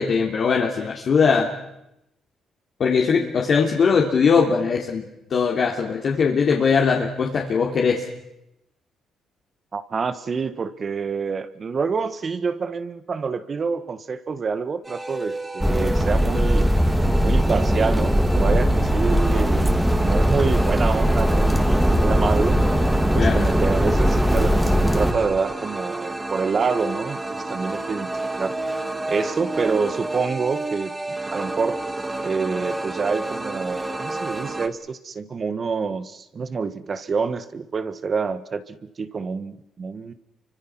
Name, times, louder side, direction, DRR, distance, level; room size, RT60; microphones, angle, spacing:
voice 1, 0.0-1.5 2.8-5.0 5.3-8.0 23.2-23.5, left 5 dB, 55° left, -1 dB, 3.1 m, -20 dB
voice 2, 9.7-16.7 17.2-22.6 23.1-28.1 28.4-28.5 29.1-31.8 32.2-40.1, right 5 dB, 40° right, 12 dB, 1.6 m, -27 dB
sound 1, 14.8-34.7, right 2 dB, 20° right, 2.4 m, -31 dB
sound 2, 15.6-25.1, equal, 5° right, 2.7 m, -19 dB
29.0 x 25.0 x 6.1 m, 0.86 s
cardioid pair, 90°, 0 cm